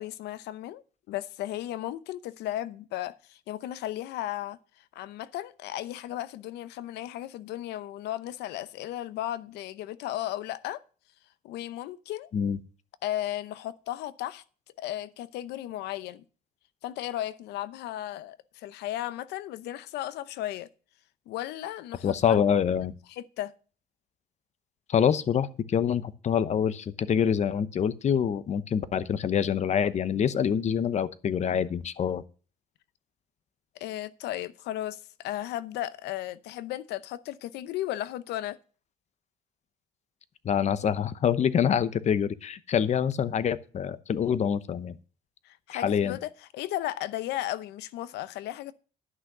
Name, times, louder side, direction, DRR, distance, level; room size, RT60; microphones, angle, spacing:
voice 1, 0.0-4.6 4.9-10.8 11.4-12.3 13.0-14.4 14.8-16.2 16.8-20.7 21.3-22.4 23.1-23.5 33.8-38.6 45.5-48.7, left 13 dB, 80° left, 0.7 m, -35 dB
voice 2, 22.0-22.9 24.9-32.2 40.4-45.0 45.7-46.2, left 8 dB, 40° left, 0.9 m, -26 dB
11.0 x 6.1 x 6.7 m
cardioid pair, 110°, 17 cm